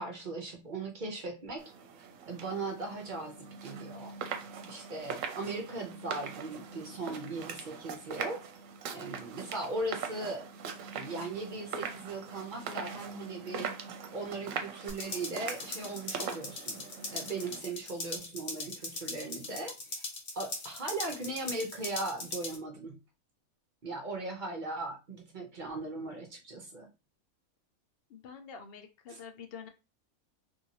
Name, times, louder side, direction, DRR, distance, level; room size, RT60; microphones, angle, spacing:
voice 1, 0.0-1.7 2.3-4.1 4.7-8.4 8.9-10.5 10.9-13.7 14.1-16.8 17.1-20.0 20.3-23.0 23.8-26.9 29.1-29.2, right 2 dB, 55° right, 0.5 m, -38 dB
sound 1, 1.6-17.6, right 6 dB, 70° right, 0.9 m, -42 dB
sound 2, 14.9-22.6, left 3 dB, 45° left, 1.0 m, -40 dB
voice 2, 28.1-29.7, left 6 dB, 65° left, 0.6 m, -47 dB
2.9 x 2.6 x 2.8 m
omnidirectional pair, 1.5 m